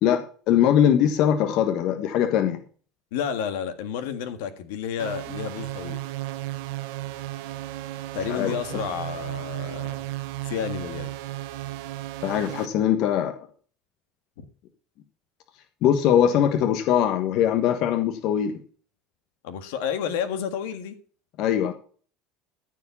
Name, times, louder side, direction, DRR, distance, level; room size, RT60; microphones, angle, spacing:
voice 1, 0.0-2.6 8.3-8.5 12.2-13.4 15.8-18.6 21.4-21.7, left 9 dB, 60° left, 7 dB, 1.4 m, -21 dB
voice 2, 3.1-6.0 8.1-9.9 10.4-11.1 19.4-20.9, left 8 dB, 80° left, 9 dB, 1.6 m, -30 dB
sound 1, 5.0-12.7, right 16 dB, 75° right, 0.9 m, -34 dB
14.0 x 4.9 x 7.1 m, 0.42 s
supercardioid pair, 95°, 0 cm